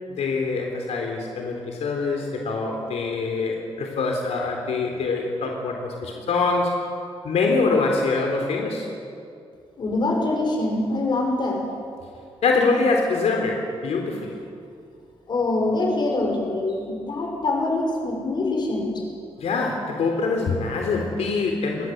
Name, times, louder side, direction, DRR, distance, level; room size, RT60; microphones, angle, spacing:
voice 1, 0.0-6.8 7.2-8.9 12.4-14.4 19.4-21.9, left 3 dB, 85° left, 1 dB, 3.8 m, -24 dB
voice 2, 9.8-11.6 15.3-19.0, left 2 dB, 45° left, 1 dB, 6.4 m, -24 dB
29.0 x 22.0 x 8.0 m, 2.4 s
wide cardioid pair, 160°, 11 cm